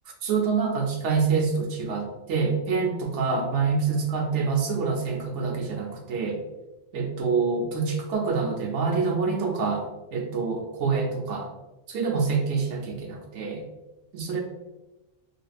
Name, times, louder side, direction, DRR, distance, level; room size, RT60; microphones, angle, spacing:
voice 1, 0.2-6.4 6.9-11.5 11.9-13.7 14.1-14.4, right 5 dB, 70° right, 1 dB, 1.0 m, -26 dB
3.3 x 2.8 x 2.4 m, 1.0 s
omnidirectional pair, 1.3 m